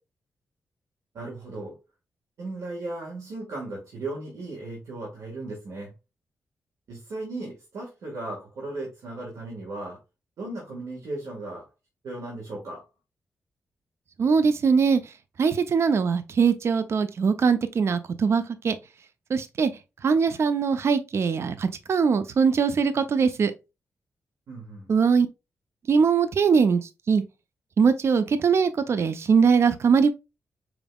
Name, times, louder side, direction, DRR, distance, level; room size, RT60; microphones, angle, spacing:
voice 1, 1.1-1.8 2.4-5.9 6.9-10.0 10.4-11.7 12.0-12.9 24.5-24.9, right 2 dB, 80° right, 1.6 m, -36 dB
voice 2, 14.2-15.0 15.4-18.8 19.3-19.7 20.0-23.5 24.9-25.3 25.9-26.8 27.1-27.2 27.8-30.1, right 5 dB, 60° right, 0.5 m, -21 dB
4.7 x 3.6 x 2.2 m
cardioid pair, 85°, 5 cm